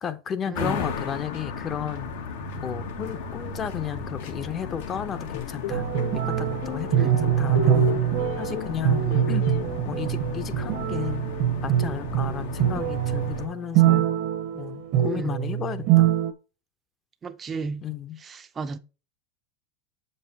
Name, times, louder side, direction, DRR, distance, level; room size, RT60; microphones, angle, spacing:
voice 1, 0.0-2.1 2.6-5.8 6.1-7.9 8.4-9.5 9.8-11.2 11.6-14.1 14.5-16.2 17.8-18.2, left 9 dB, 30° left, 0.7 m, -33 dB
sound 1, 0.5-13.5, left 5 dB, 80° left, 1.3 m, -35 dB
sound 2, 5.3-6.2 6.6-8.8 9.1-9.7, left 13 dB, 65° left, 0.5 m, -35 dB
sound 3, 5.7-16.3, right 11 dB, 55° right, 0.9 m, -24 dB
voice 2, 17.2-17.8 18.6-18.8, right 4 dB, 25° right, 0.6 m, -32 dB
7.1 x 5.5 x 2.8 m
supercardioid pair, 125°, 0 cm